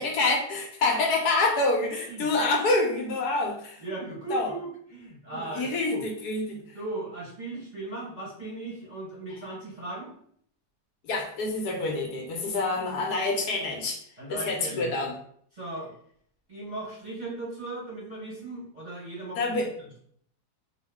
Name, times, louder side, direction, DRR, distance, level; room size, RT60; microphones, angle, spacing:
voice 1, 0.0-3.8 4.3-4.5 5.3-6.8 11.0-14.0 14.3-15.1 19.4-19.7, left 2 dB, 70° left, 1 dB, 1.2 m, -27 dB
voice 2, 3.8-6.0 6.7-10.1 14.2-14.9 15.5-15.9 16.5-19.4, right 2 dB, 30° right, -6 dB, 0.8 m, -37 dB
4.5 x 2.0 x 3.5 m, 0.64 s
omnidirectional pair, 1.9 m